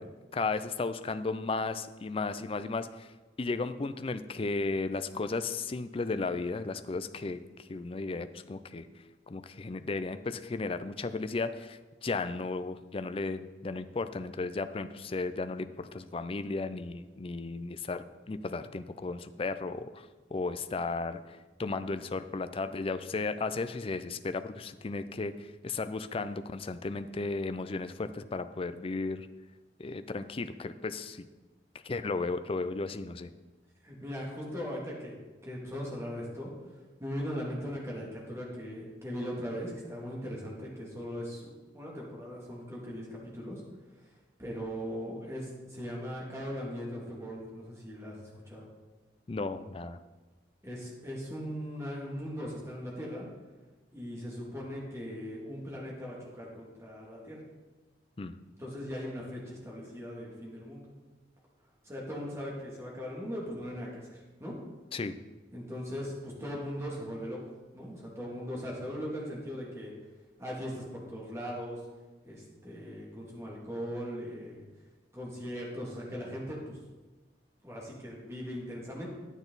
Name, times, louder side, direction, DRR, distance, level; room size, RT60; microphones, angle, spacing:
voice 1, 0.3-3.1 3.4-8.9 9.3-29.3 29.8-31.3 31.8-33.3 49.3-50.0 58.2-58.4 64.9-65.2, left 3 dB, 30° left, 10 dB, 0.4 m, -35 dB
voice 2, 33.8-35.1 35.4-36.5 37.0-41.4 41.7-43.6 44.4-48.6 50.6-53.3 53.9-57.4 58.6-60.9 61.8-64.5 65.5-67.4 67.7-69.9 70.4-71.8 72.2-74.6 75.1-76.8 77.6-79.1, equal, 15° right, -4 dB, 2.6 m, -39 dB
10.0 x 9.0 x 4.0 m, 1.2 s
head